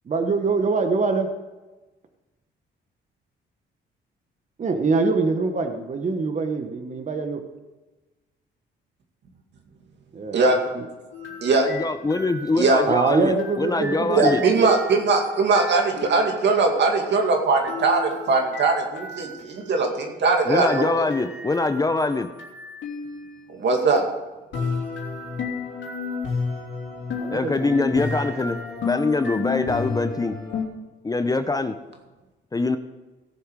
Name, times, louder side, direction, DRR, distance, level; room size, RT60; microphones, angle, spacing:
voice 1, 0.1-1.3 4.6-7.4 10.1-10.4 10.7-10.8 12.9-14.8 27.2-28.1, right 4 dB, 40° right, 6 dB, 1.2 m, -24 dB
sound 1, 11.1-16.4 17.7-23.4 24.5-30.6, left 4 dB, 70° left, 3.0 m, -33 dB
voice 2, 11.6-14.4 20.4-22.3 27.3-30.4 31.0-31.8 32.5-32.8, left 3 dB, 20° left, 9 dB, 0.6 m, -24 dB
voice 3, 14.2-21.1 23.5-24.0, right 3 dB, 65° right, 2 dB, 2.3 m, -20 dB
17.5 x 7.2 x 4.8 m, 1.2 s
cardioid pair, 90°, 20 cm